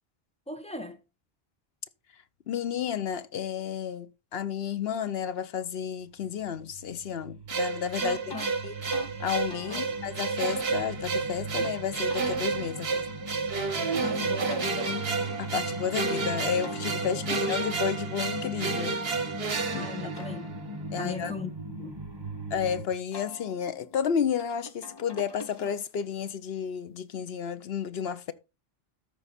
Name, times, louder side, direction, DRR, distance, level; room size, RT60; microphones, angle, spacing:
voice 1, 0.5-1.0 8.0-8.5 9.7-9.8 14.0-15.1 17.3-17.4 19.7-20.5 21.0-21.5 21.8-22.0, left 3 dB, 5° left, 1.3 m, -38 dB
voice 2, 2.5-8.3 8.6-8.7 9.2-13.1 15.4-19.0 19.7-19.9 20.9-21.3 22.5-28.3, left 8 dB, 70° left, 1.0 m, -32 dB
sound 1, 6.2-22.8, right 1 dB, 25° right, 1.5 m, -39 dB
sound 2, 7.5-20.7, right 4 dB, 70° right, 1.5 m, -31 dB
sound 3, 8.3-8.5 8.9-9.1 9.5-11.7 12.1-14.0 14.5-16.2 16.6-19.5 19.9-22.6 23.1-26.1, left 3 dB, 25° left, 0.9 m, -48 dB
13.0 x 4.7 x 4.1 m
omnidirectional pair, 1.1 m